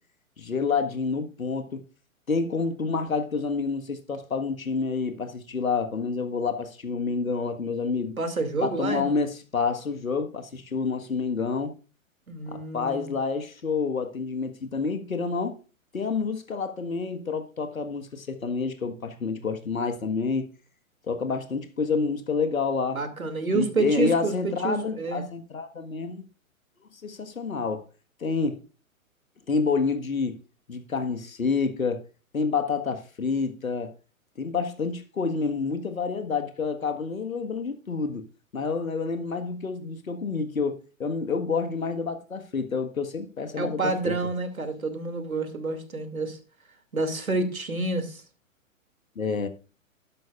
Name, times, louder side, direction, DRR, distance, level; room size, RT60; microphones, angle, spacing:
voice 1, 0.4-1.8 2.3-8.2 8.6-11.7 12.5-15.6 15.9-20.5 21.1-23.0 23.5-26.2 27.0-27.9 28.2-28.6 29.5-30.4 30.7-32.0 32.3-33.9 34.4-38.2 38.5-44.1 49.1-49.5, left 4 dB, 75° left, 1.6 m, -28 dB
voice 2, 8.2-9.0 12.3-13.1 22.9-25.3 43.6-46.4 46.9-48.2, right 3 dB, 80° right, 2.6 m, -28 dB
12.5 x 11.5 x 2.4 m
figure-of-eight pair, 115°, 41 cm